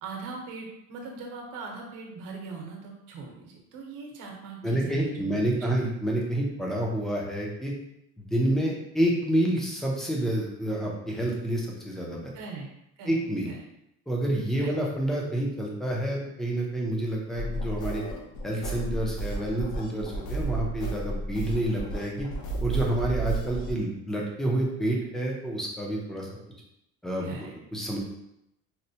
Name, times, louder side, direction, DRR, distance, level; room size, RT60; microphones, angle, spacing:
voice 1, 0.0-5.8 12.3-12.7 13.0-13.2 13.5-13.6 14.6-14.7 21.4-21.6 27.2-27.5, right 4 dB, 75° right, 1 dB, 0.9 m, -40 dB
voice 2, 4.6-7.7 8.2-12.3 13.0-13.5 14.1-18.0 18.4-22.3 22.6-26.3 27.0-28.0, right 1 dB, ahead, -2 dB, 0.4 m, -28 dB
sound 1, 17.3-23.7, right 2 dB, 60° left, 0.6 m, -32 dB
4.2 x 2.1 x 2.7 m, 0.81 s
cardioid pair, 160°, 33 cm